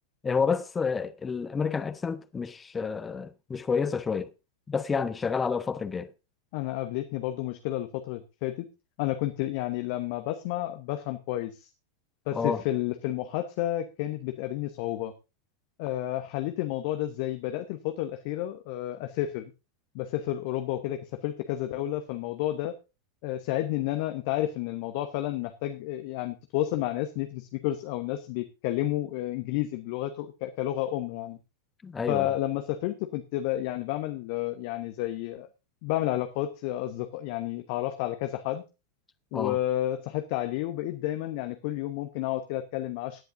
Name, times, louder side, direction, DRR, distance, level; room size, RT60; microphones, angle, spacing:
voice 1, 0.2-4.3 4.7-6.1 12.3-12.6 31.8-32.3 39.3-39.6, left 5 dB, 15° left, 1.0 m, -29 dB
voice 2, 6.5-8.7 9.0-11.7 12.3-15.1 15.8-19.5 19.9-22.8 23.2-31.4 32.1-35.5 35.8-38.6 39.3-43.2, left 14 dB, 45° left, 1.0 m, -31 dB
18.0 x 10.5 x 2.6 m
figure-of-eight pair, 90°, 0 cm